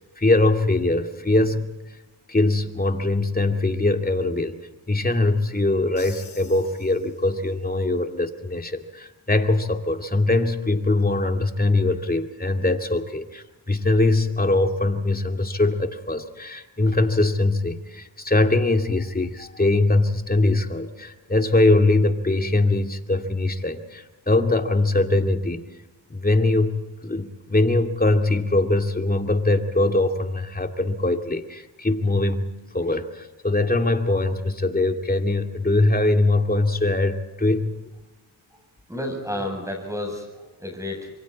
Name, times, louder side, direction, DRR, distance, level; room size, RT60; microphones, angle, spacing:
voice 1, 0.2-1.7 2.3-4.6 4.9-25.6 26.1-32.5 32.7-37.7, left 2 dB, 20° left, 5 dB, 2.4 m, -22 dB
Crash cymbal, 6.0-7.7, left 6 dB, 60° left, 4.0 m, -47 dB
voice 2, 38.9-41.1, left 1 dB, 5° right, 2 dB, 7.9 m, -31 dB
27.0 x 23.5 x 4.3 m, 1.1 s
cardioid pair, 55°, 48 cm